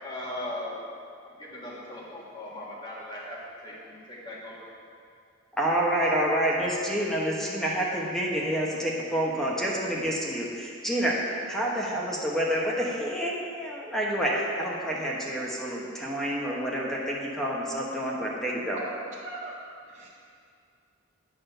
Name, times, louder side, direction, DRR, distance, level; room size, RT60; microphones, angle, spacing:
voice 1, 0.0-0.8 1.2-4.7, left 1 dB, 20° left, -6 dB, 1.6 m, -38 dB
voice 2, 5.6-18.8, equal, ahead, -4 dB, 0.9 m, -28 dB
voice 3, 18.7-19.5 19.9-20.1, right 2 dB, 35° right, -6 dB, 0.8 m, -39 dB
9.4 x 4.2 x 6.6 m, 2.4 s
head